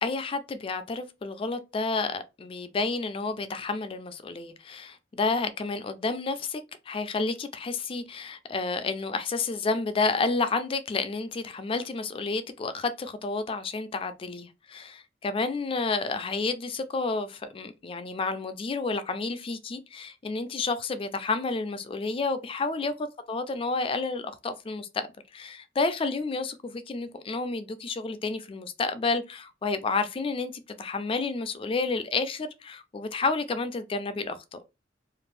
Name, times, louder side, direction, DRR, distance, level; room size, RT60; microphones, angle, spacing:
voice 1, 0.0-6.6 6.9-22.9 23.3-25.1 25.3-34.6, left 3 dB, 30° left, 0.3 m, -30 dB
2.5 x 2.5 x 3.2 m
head